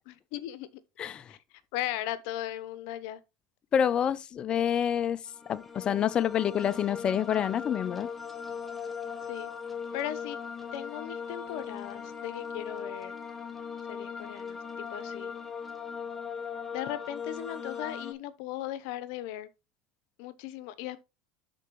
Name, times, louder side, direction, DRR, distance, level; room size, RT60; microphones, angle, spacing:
voice 1, 0.3-0.7 1.3-3.2 9.3-9.5 9.9-10.4 10.7-13.1 13.9-15.3 16.7-19.5 20.2-21.0, left 13 dB, 70° left, 0.8 m, -37 dB
voice 2, 3.7-5.2 5.5-8.1, left 9 dB, 35° left, 0.5 m, -27 dB
sound 1, 5.3-18.1, left 6 dB, 5° left, 1.8 m, -39 dB
12.0 x 4.5 x 3.1 m
supercardioid pair, 120°, 3 cm